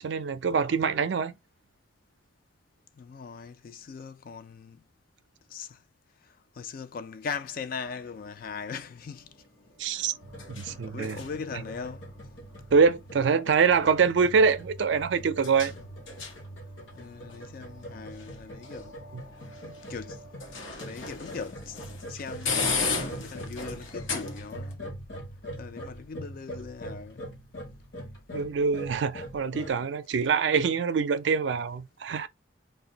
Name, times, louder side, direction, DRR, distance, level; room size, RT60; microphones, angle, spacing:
voice 1, 0.0-1.3 9.8-10.1 10.5-11.1 12.7-15.7 19.1-19.2 28.3-32.3, right 5 dB, 65° right, 0.4 m, -24 dB
voice 2, 3.0-4.8 5.5-5.8 6.2-9.3 9.9-12.1 15.6-15.8 16.9-19.0 19.6-20.2 20.8-24.9 25.6-27.3, left 5 dB, 50° left, 0.4 m, -40 dB
sound 1, 7.3-24.7, left 4 dB, 90° left, 0.8 m, -38 dB
sound 2, 10.2-29.7, equal, 70° left, 1.2 m, -43 dB
2.5 x 2.2 x 3.8 m
head